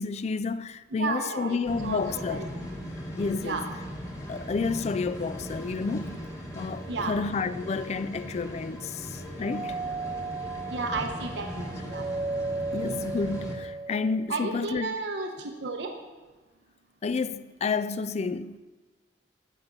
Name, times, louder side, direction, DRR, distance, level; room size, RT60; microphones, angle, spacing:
voice 1, 0.0-2.5 3.2-3.7 4.3-6.2 6.5-9.8 12.7-14.9 17.0-18.6, left 4 dB, 40° left, 0.4 m, -30 dB
voice 2, 0.9-2.4 3.4-3.7 6.9-7.2 10.7-12.0 14.3-15.9, right 3 dB, 85° right, 0.9 m, -33 dB
sound 1, 1.6-13.6, equal, 20° left, 1.6 m, -39 dB
Doorbell, 9.4-14.2, right 3 dB, 30° right, 0.7 m, -35 dB
14.0 x 5.8 x 5.2 m
head